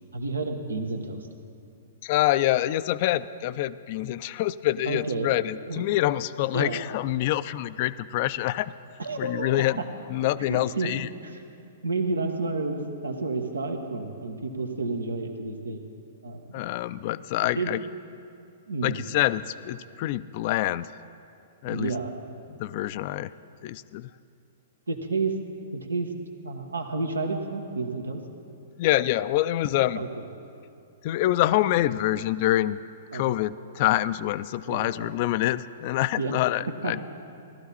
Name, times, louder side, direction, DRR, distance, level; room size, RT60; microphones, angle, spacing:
voice 1, 0.1-1.3 4.8-5.3 5.7-5.9 6.5-6.8 9.0-9.6 10.5-10.9 11.2-11.4 11.8-15.8 16.2-16.6 17.5-17.7 18.7-19.0 21.6-22.1 24.9-25.3 25.7-26.1 26.4-28.2 29.9-30.3 33.1-33.2 34.7-35.1 36.2-36.3 36.8-37.0, right 3 dB, 85° right, 4 dB, 1.2 m, -30 dB
voice 2, 2.0-8.7 9.2-9.8 10.1-11.1 16.5-17.8 18.8-20.9 21.6-21.9 22.5-23.3 23.6-24.1 28.8-30.0 31.0-32.8 33.1-37.0, left 15 dB, 45° left, 16 dB, 0.3 m, -26 dB
16.5 x 12.5 x 4.2 m, 2.5 s
hypercardioid pair, 115°, 0 cm